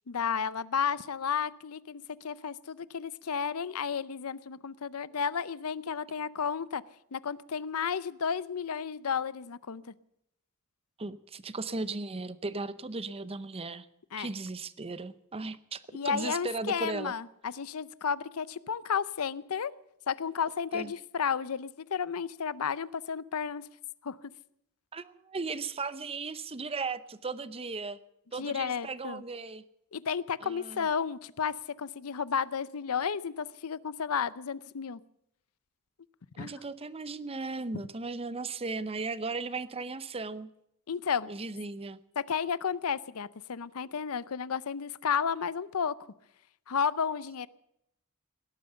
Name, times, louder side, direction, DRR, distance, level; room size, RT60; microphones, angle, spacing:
voice 1, 0.1-6.8 7.1-9.8 14.1-14.3 15.9-19.7 20.1-23.7 24.0-24.2 28.4-29.2 29.9-35.0 36.4-36.5 40.9-41.3 42.2-45.9 46.7-47.5, left 6 dB, 75° left, 18 dB, 0.6 m, -32 dB
voice 2, 11.0-13.9 14.2-15.8 16.0-17.1 20.7-20.9 24.9-28.0 28.3-29.6 30.4-30.9 36.3-40.5 41.3-42.0, right 3 dB, 25° right, 15 dB, 0.7 m, -36 dB
17.5 x 11.5 x 6.9 m, 0.79 s
head